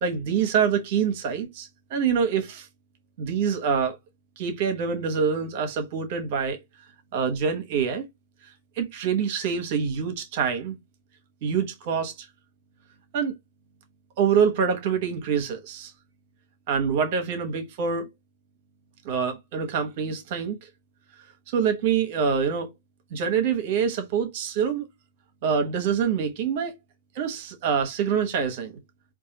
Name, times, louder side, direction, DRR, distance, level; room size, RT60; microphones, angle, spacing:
voice 1, 0.0-2.7 3.2-4.0 4.4-6.6 7.1-8.0 8.8-10.8 11.4-12.3 13.1-13.3 14.2-15.9 16.7-18.1 19.0-20.7 21.5-22.7 23.1-24.9 25.4-26.7 27.1-28.8, right 6 dB, 50° right, 1.0 m, -25 dB
4.6 x 2.4 x 2.8 m
figure-of-eight pair, 110°, 0 cm